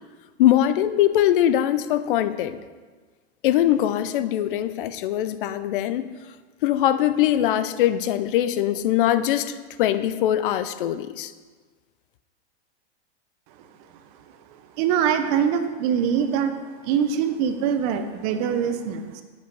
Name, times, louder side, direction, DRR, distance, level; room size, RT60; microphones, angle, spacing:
voice 1, 0.4-2.6 3.4-6.0 6.6-11.3, left 12 dB, 55° left, 13 dB, 0.5 m, -22 dB
voice 2, 14.8-16.6 16.8-19.2, right 8 dB, 35° right, 9 dB, 0.5 m, -23 dB
8.2 x 5.0 x 4.6 m, 1.4 s
supercardioid pair, 145°, 33 cm